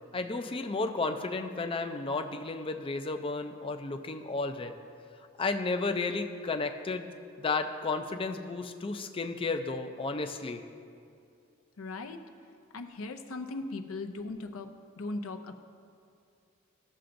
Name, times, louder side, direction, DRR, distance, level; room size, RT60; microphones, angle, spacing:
voice 1, 0.1-4.7 5.4-7.1 7.4-10.6, left 3 dB, 25° left, 7 dB, 0.4 m, -33 dB
voice 2, 11.8-12.2 12.7-14.7 15.0-15.5, left 2 dB, 70° left, 6 dB, 0.6 m, -38 dB
15.5 x 6.8 x 2.6 m, 2.5 s
head